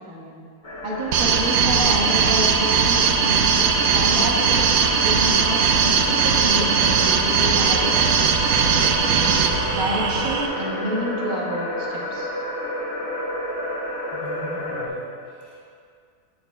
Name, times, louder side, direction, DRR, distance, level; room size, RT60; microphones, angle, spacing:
voice 1, 0.1-0.4 0.8-3.4 3.9-4.6 5.0-7.9 9.0-12.3, equal, 60° right, -3 dB, 1.5 m, -29 dB
sound 1, 0.6-14.9, left 1 dB, 45° left, 1.1 m, -31 dB
sound 2, 1.1-10.5, right 6 dB, 80° right, 0.6 m, -19 dB
voice 2, 14.1-15.6, right 1 dB, 20° left, -7 dB, 1.9 m, -40 dB
9.1 x 7.5 x 2.3 m, 2.3 s
omnidirectional pair, 1.7 m